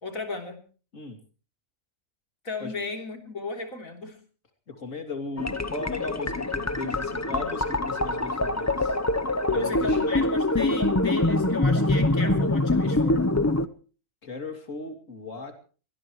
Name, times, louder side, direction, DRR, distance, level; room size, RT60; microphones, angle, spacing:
voice 1, 0.0-0.6 2.4-4.2 9.5-13.2, left 3 dB, 85° left, 5 dB, 3.7 m, -35 dB
voice 2, 4.7-9.0 9.5-10.0 14.2-15.5, left 3 dB, 70° left, 6 dB, 3.2 m, -36 dB
sound 1, 5.4-13.7, left 2 dB, 15° left, 0.6 m, -24 dB
23.5 x 18.5 x 3.1 m, 0.38 s
omnidirectional pair, 1.4 m